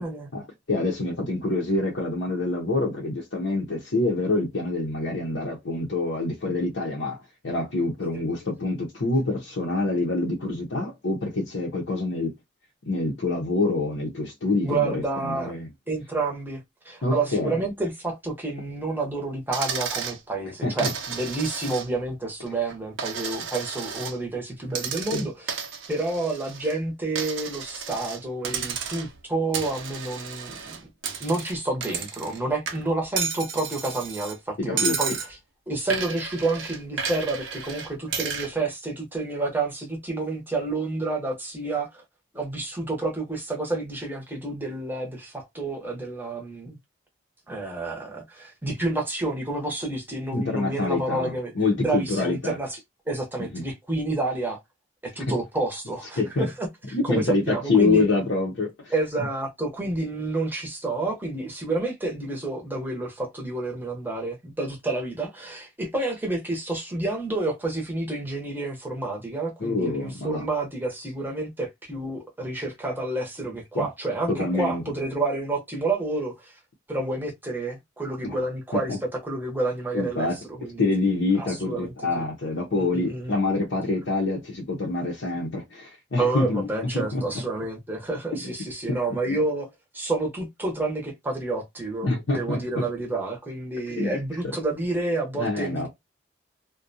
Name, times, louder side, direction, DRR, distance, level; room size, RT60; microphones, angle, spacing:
voice 1, 0.3-7.2 7.4-12.3 12.9-15.7 17.0-17.6 20.5-20.9 25.1-25.2 34.6-35.0 50.3-52.6 53.5-53.6 56.2-56.5 56.9-58.9 69.6-70.4 73.7-73.9 74.3-74.8 78.2-78.4 78.7-79.0 79.9-80.4 80.8-86.7 86.9-87.2 88.9-89.0 89.3-89.4 92.0-92.8 93.9-94.2 95.4-95.9, left 2 dB, 70° left, 0.7 m, -26 dB
voice 2, 14.6-15.5 15.9-25.6 25.9-30.8 31.2-35.2 35.7-42.0 42.3-46.8 47.5-51.5 51.8-52.8 53.1-54.6 55.0-58.0 58.9-76.6 76.9-80.9 81.4-82.3 82.7-83.4 86.2-89.7 89.9-95.9, right 2 dB, 10° right, 0.7 m, -29 dB
Coin (dropping), 19.5-20.2 20.8-22.1 22.5-24.2 24.7-26.7 27.2-28.2 28.4-29.2 29.5-32.4 32.7-34.4 34.8-35.3 35.9-38.5, right 6 dB, 80° right, 0.6 m, -32 dB
2.4 x 2.1 x 2.6 m
head